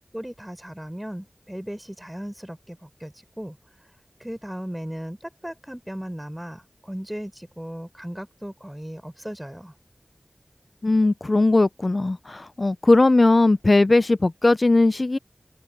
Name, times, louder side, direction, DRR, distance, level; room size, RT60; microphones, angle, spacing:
voice 1, 0.1-3.6 4.2-9.7, equal, 10° right, 4.9 m, -36 dB
voice 2, 10.8-15.2, left 2 dB, 50° left, 0.4 m, -19 dB
open air
wide cardioid pair, 50°, 0 cm